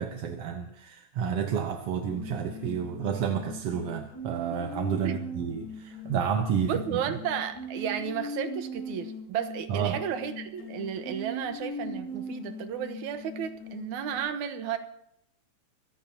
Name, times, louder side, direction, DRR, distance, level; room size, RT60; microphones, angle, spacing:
voice 1, 0.0-7.0 9.7-10.0, right 7 dB, 60° right, 4 dB, 1.9 m, -30 dB
sound 1, 2.1-14.2, equal, 80° left, 4.3 m, -40 dB
voice 2, 6.6-14.8, right 8 dB, 75° right, 8 dB, 2.6 m, -33 dB
24.0 x 16.0 x 2.9 m, 0.76 s
omnidirectional pair, 3.4 m